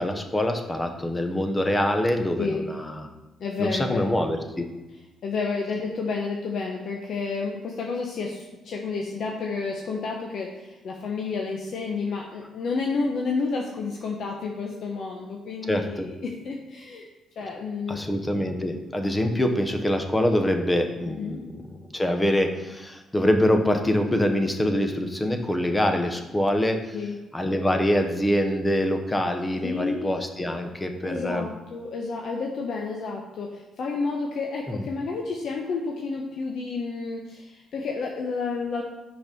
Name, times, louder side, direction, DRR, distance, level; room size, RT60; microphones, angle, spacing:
voice 1, 0.0-3.1 3.6-4.7 15.7-16.1 17.9-21.5 21.9-26.8 27.3-31.5 34.7-34.9, left 1 dB, 15° left, 5 dB, 0.9 m, -24 dB
voice 2, 2.4-2.7 3.4-4.3 5.2-17.1 17.4-18.0 19.3-19.4 21.2-21.4 26.9-27.2 29.6-30.1 31.0-38.8, left 4 dB, 65° left, 0 dB, 0.8 m, -30 dB
6.0 x 5.2 x 5.3 m, 1.1 s
cardioid pair, 90°, 0 cm